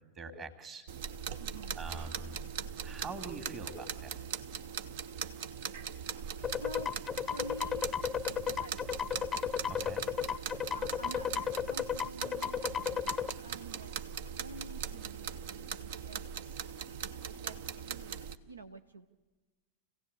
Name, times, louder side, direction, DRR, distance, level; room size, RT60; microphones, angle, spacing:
voice 1, 0.2-0.8 1.7-2.4 2.8-4.2 9.7-10.1, right 3 dB, 30° right, 7 dB, 2.7 m, -43 dB
sound 1, 0.9-18.4, right 8 dB, 55° right, 0.9 m, -40 dB
voice 2, 1.4-1.8 6.6-6.9 7.3-7.9 8.3-9.0 10.7-13.1 13.4-16.2 17.3-19.1, right 2 dB, 80° right, 9 dB, 0.9 m, -49 dB
sound 2, 6.4-13.3, left 8 dB, 15° left, 0.7 m, -34 dB
29.0 x 16.5 x 8.4 m, 1.2 s
figure-of-eight pair, 90°, 0 cm